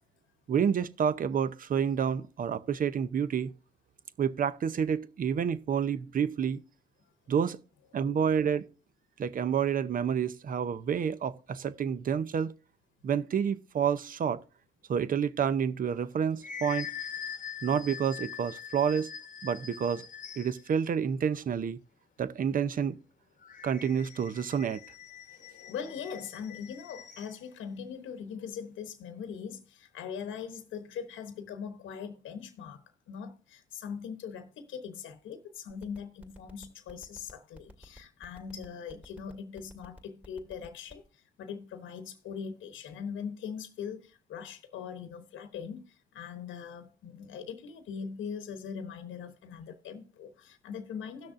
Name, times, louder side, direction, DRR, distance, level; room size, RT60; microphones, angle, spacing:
voice 1, 0.5-3.5 4.2-6.6 7.3-7.6 7.9-8.6 9.2-12.5 13.0-14.4 14.9-16.9 17.6-19.1 19.4-20.0 20.4-21.8 22.2-23.0 23.6-24.8, right 7 dB, 45° right, 0.6 m, -29 dB
sound 1, 15.9-20.7 23.4-27.4, left 8 dB, 40° left, 1.0 m, -43 dB
voice 2, 25.3-51.3, left 7 dB, 75° left, 1.0 m, -41 dB
sound 2, 35.7-41.1, left 1 dB, 5° right, 2.0 m, -50 dB
17.0 x 6.4 x 2.5 m
cardioid pair, 90°, 20 cm